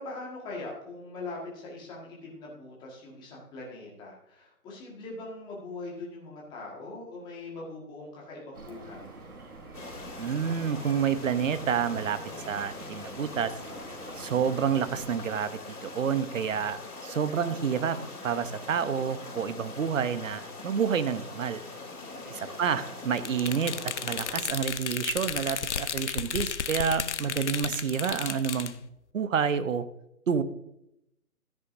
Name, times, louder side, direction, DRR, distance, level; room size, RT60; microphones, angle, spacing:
voice 1, 0.0-9.1 21.9-22.9, left 2 dB, 10° left, -3 dB, 1.7 m, -42 dB
sound 1, 8.5-15.1, right 2 dB, 80° right, 3.8 m, -46 dB
sound 2, 9.7-24.4, left 3 dB, 80° left, 3.0 m, -42 dB
voice 2, 10.2-12.2 12.5-13.5 14.1-21.6 22.3-23.7 24.0-28.8 29.1-29.8 30.3-30.4, right 7 dB, 60° right, 12 dB, 0.9 m, -29 dB
sound 3, 23.2-28.7, left 7 dB, 50° left, 0.7 m, -33 dB
13.0 x 10.0 x 2.7 m, 0.82 s
hypercardioid pair, 155°, 44 cm